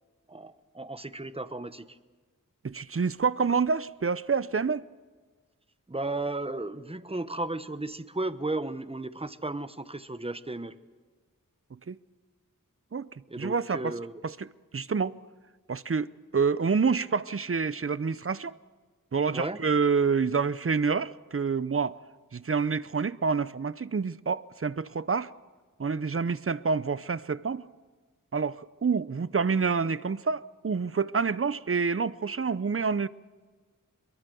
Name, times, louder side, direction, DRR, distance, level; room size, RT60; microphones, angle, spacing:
voice 1, 0.3-2.0 5.9-10.8 13.3-14.2 19.3-19.6, right 2 dB, 15° right, 1.0 m, -34 dB
voice 2, 2.6-4.8 11.9-12.0 12.9-13.1 13.4-13.9 14.4-14.5 14.7-15.1 15.7-18.5 19.1-22.0 22.3-25.3 25.8-27.7 28.3-33.1, right 5 dB, 40° right, 0.6 m, -27 dB
23.0 x 22.5 x 6.9 m
wide cardioid pair, 65°, 33 cm